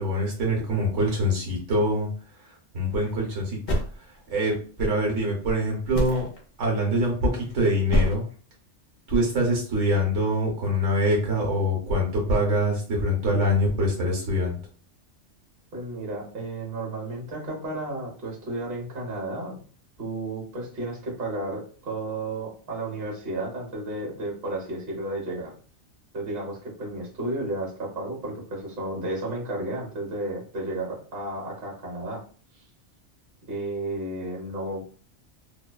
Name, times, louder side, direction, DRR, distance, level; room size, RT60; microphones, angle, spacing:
voice 1, 0.0-2.1 2.7-6.2 6.6-8.2 9.1-14.6, equal, 80° right, -1 dB, 1.1 m, -24 dB
sound 1, 2.9-3.2 3.7-4.5 5.4-5.5 5.9-6.4 7.2-7.5 7.9-8.2, equal, 60° left, 0.9 m, -26 dB
voice 2, 15.7-19.6 20.0-25.5 26.1-32.2 33.4-34.8, right 2 dB, 55° right, -3 dB, 1.2 m, -32 dB
2.6 x 2.2 x 2.2 m, 0.42 s
omnidirectional pair, 1.2 m